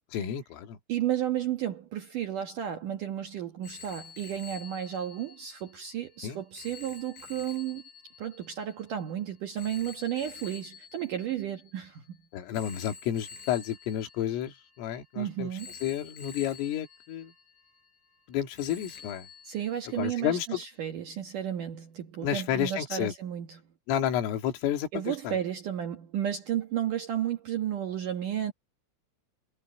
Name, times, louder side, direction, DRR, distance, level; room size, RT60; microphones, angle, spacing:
voice 1, 0.1-0.8 6.2-6.4 12.3-15.5 15.8-17.3 18.3-19.3 20.0-20.6 22.2-23.1 23.9-25.4, left 10 dB, 75° left, 4.8 m, -31 dB
voice 2, 0.9-7.8 8.2-12.2 15.2-15.7 19.4-23.6 24.9-28.5, right 10 dB, 75° right, 1.9 m, -33 dB
Telephone, 3.6-12.0 12.5-15.1 15.6-18.3 18.6-20.3, left 5 dB, 60° left, 9.6 m, -49 dB
omnidirectional pair, 5.9 m